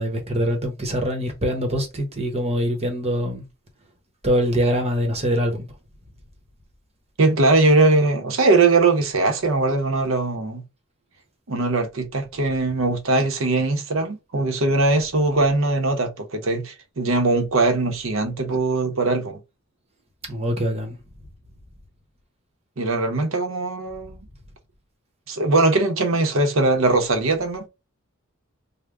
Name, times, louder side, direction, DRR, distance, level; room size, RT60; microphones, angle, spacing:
voice 1, 0.0-3.4 4.2-5.7 20.3-20.9, equal, 30° right, 1.0 m, -23 dB
voice 2, 7.2-10.6 11.5-19.4 22.8-24.2 25.3-27.7, right 3 dB, 70° right, 0.8 m, -20 dB
3.3 x 2.2 x 3.5 m
head